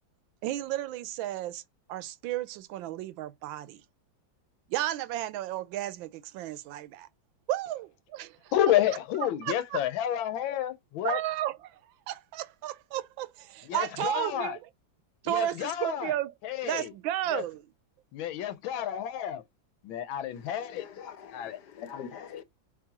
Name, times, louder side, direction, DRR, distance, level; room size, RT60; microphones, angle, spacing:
voice 1, 0.4-1.6 1.9-3.8 4.7-7.1 7.5-8.5 9.4-9.8 11.0-14.7 15.2-16.3 16.6-17.6, right 13 dB, 85° right, 1.3 m, -33 dB
voice 2, 8.5-11.2 13.7-14.6 15.2-16.1 16.4-16.9 17.3-17.4 18.1-19.4 19.8-20.9 21.3-21.6, left 11 dB, 85° left, 1.5 m, -30 dB
voice 3, 20.4-22.4, left 8 dB, 65° left, 1.2 m, -44 dB
4.6 x 3.6 x 2.8 m
omnidirectional pair, 2.1 m